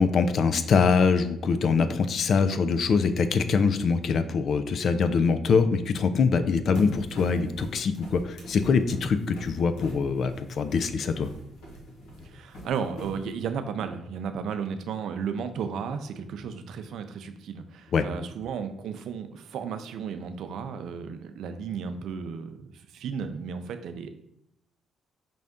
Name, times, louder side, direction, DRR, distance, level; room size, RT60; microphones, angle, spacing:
voice 1, 0.0-11.3 17.9-18.1, left 5 dB, 60° left, 10 dB, 0.4 m, -23 dB
sound 1, 6.7-13.5, left 1 dB, 90° left, 1.2 m, -43 dB
voice 2, 12.2-22.7 22.9-24.1, right 6 dB, 75° right, 8 dB, 0.4 m, -34 dB
5.4 x 2.5 x 3.5 m, 0.78 s
cardioid pair, 90°, 0 cm